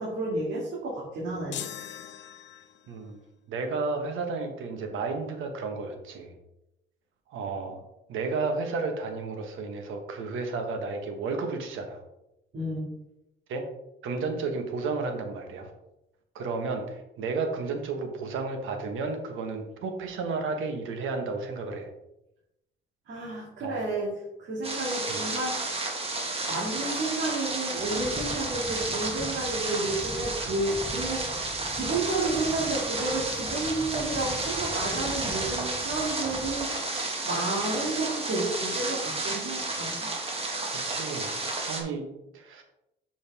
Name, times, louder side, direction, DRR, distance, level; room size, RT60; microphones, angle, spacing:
voice 1, 0.0-1.6 12.5-12.9 23.1-24.1 24.4-25.9 26.5-36.7 37.2-40.1, right 2 dB, 65° right, -6 dB, 2.2 m, -31 dB
sound 1, 1.5-3.0, left 10 dB, 65° left, 0.6 m, -40 dB
voice 2, 2.9-3.2 3.5-6.3 7.3-7.8 8.1-12.0 13.5-13.6 14.0-15.7 16.3-21.9 23.6-23.7 25.1-25.2 40.7-41.3 41.6-42.0 42.3-42.6, right 4 dB, 85° right, 5 dB, 1.3 m, -32 dB
sound 2, 24.6-41.8, right 2 dB, 30° right, 1.8 m, -32 dB
sound 3, 27.8-36.6, left 1 dB, 10° left, 0.7 m, -42 dB
6.9 x 5.2 x 3.5 m, 0.88 s
cardioid pair, 90°, 20 cm